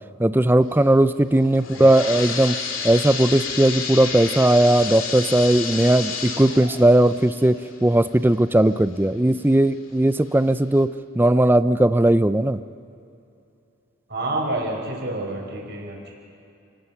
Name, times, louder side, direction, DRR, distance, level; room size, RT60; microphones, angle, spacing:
voice 1, 0.2-2.6 2.8-7.6 7.8-10.9 11.2-12.6, right 1 dB, 10° right, 13 dB, 0.4 m, -18 dB
sound 1, 1.4-9.0 9.5-9.6 10.3-10.4 10.8-10.9, left 5 dB, 90° left, 2.4 m, -31 dB
voice 2, 1.6-1.9 14.1-16.1, right 2 dB, 55° right, -1 dB, 5.0 m, -29 dB
30.0 x 19.5 x 5.9 m, 2.6 s
head